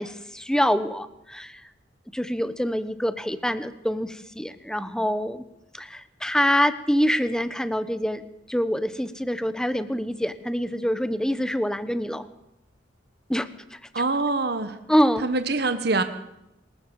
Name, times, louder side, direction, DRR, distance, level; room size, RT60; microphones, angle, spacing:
voice 1, 0.0-1.7 2.1-5.4 5.7-8.2 8.5-12.3 13.3-13.8 14.9-15.3, equal, 5° left, 12 dB, 1.0 m, -25 dB
voice 2, 13.9-14.8 15.2-16.0, right 3 dB, 55° right, 9 dB, 1.4 m, -24 dB
26.5 x 14.0 x 7.1 m, 0.89 s
head